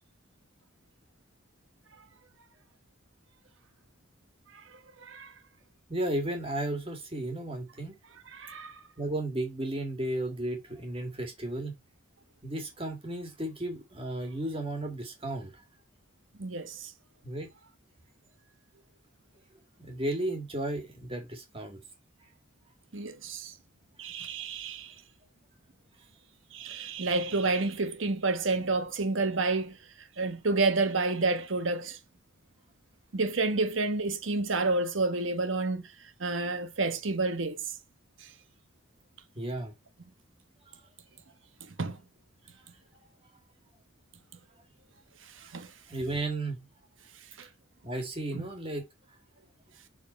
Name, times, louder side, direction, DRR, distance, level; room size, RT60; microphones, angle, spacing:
voice 1, 5.0-5.3 8.3-8.8 16.4-16.9 22.9-23.5 24.0-24.9 26.5-32.0 33.1-35.8 36.2-37.6 38.2-38.3 41.7-42.0 45.4-45.7 47.4-47.5 48.3-48.5, right 3 dB, 75° right, 1.1 m, -30 dB
voice 2, 5.9-8.0 9.0-11.7 12.4-15.6 17.2-17.5 19.8-21.8 39.4-39.7 45.9-46.7 47.8-48.8, right 1 dB, 25° right, 2.1 m, -34 dB
7.2 x 4.1 x 4.2 m
head